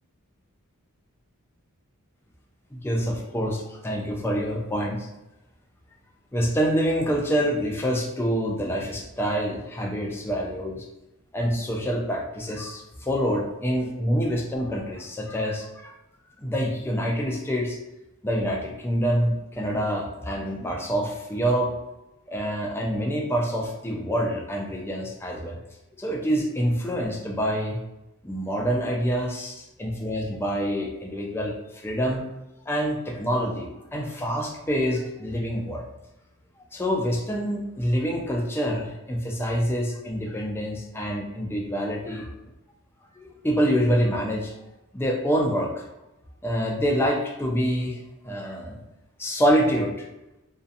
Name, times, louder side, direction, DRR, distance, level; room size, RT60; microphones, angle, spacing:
voice 1, 2.7-5.1 6.3-10.9 11.3-15.9 16.4-17.8 18.2-21.7 22.3-25.6 25.9-27.8 28.2-31.5 31.8-32.2 32.7-35.8 36.7-42.3 43.2-44.5 44.9-45.8 46.4-48.8 49.2-50.1, equal, 10° left, -1 dB, 0.4 m, -26 dB
2.6 x 2.2 x 2.5 m, 0.95 s
head